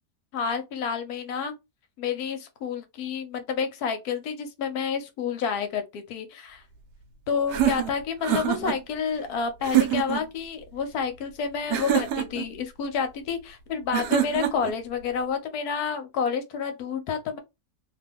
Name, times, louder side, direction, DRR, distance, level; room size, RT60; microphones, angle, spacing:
voice 1, 0.3-1.5 2.0-6.6 7.3-17.4, left 6 dB, 70° left, 1.1 m, -29 dB
sound 1, 7.5-8.8 9.6-10.2 11.7-12.5 13.9-14.7, right 10 dB, 85° right, 1.2 m, -25 dB
2.8 x 2.2 x 3.4 m
omnidirectional pair, 1.8 m